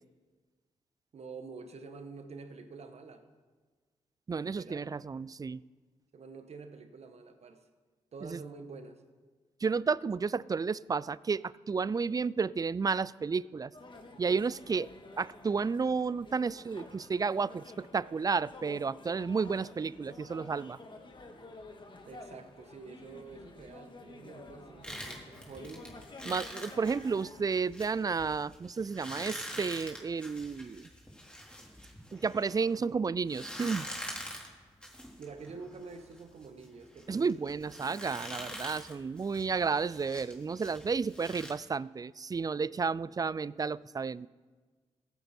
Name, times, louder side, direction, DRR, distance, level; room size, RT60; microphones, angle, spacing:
voice 1, 1.1-3.2 4.4-4.9 6.1-7.6 8.1-9.0 22.0-25.9 35.2-37.8, right 4 dB, 60° right, 8 dB, 1.4 m, -47 dB
voice 2, 4.3-5.6 8.2-8.4 9.6-13.7 14.2-14.9 15.2-20.8 26.2-30.9 32.1-33.9 37.1-44.3, right 5 dB, 30° right, 21 dB, 0.4 m, -32 dB
sound 1, 13.7-27.4, left 2 dB, 40° left, 1.9 m, -51 dB
sound 2, 24.8-32.8 33.3-41.5, equal, 10° left, 4.0 m, -45 dB
15.0 x 9.4 x 4.4 m, 1.4 s
supercardioid pair, 50°, 12 cm